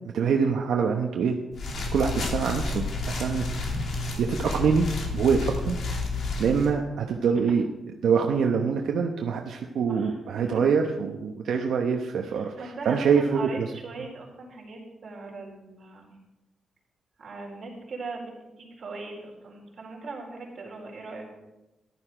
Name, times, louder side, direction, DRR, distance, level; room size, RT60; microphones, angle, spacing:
voice 1, 0.1-1.4 1.9-3.5 4.2-4.9 5.1-5.8 6.4-7.6 8.0-12.5 12.8-13.7, right 6 dB, 80° right, 2 dB, 1.0 m, -24 dB
sound 1, 1.5-6.7, left 3 dB, 60° left, 2.5 m, -30 dB
voice 2, 9.9-10.6 12.3-16.2 17.2-21.3, right 3 dB, 45° right, -2 dB, 4.5 m, -40 dB
14.5 x 11.5 x 5.0 m, 1.0 s
wide cardioid pair, 135°, 0 cm